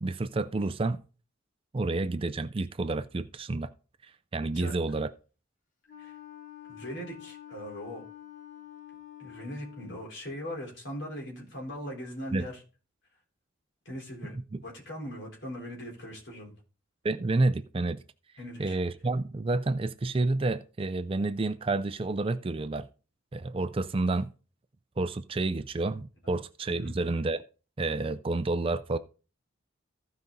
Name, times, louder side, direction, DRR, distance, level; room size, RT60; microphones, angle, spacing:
voice 1, 0.0-1.0 1.7-3.7 4.0-5.1 12.3-12.4 14.5-14.6 17.0-18.0 18.6-22.9 23.3-24.3 25.0-27.4 27.8-29.0, right 2 dB, 25° right, 0.4 m, -29 dB
Wind instrument woodwind instrument, 5.9-10.1, left 11 dB, 40° left, 1.2 m, -48 dB
voice 2, 6.7-8.0 9.2-12.6 13.9-16.5 18.4-18.8 26.7-27.0, equal, 60° left, 3.9 m, -40 dB
15.0 x 5.1 x 4.0 m
head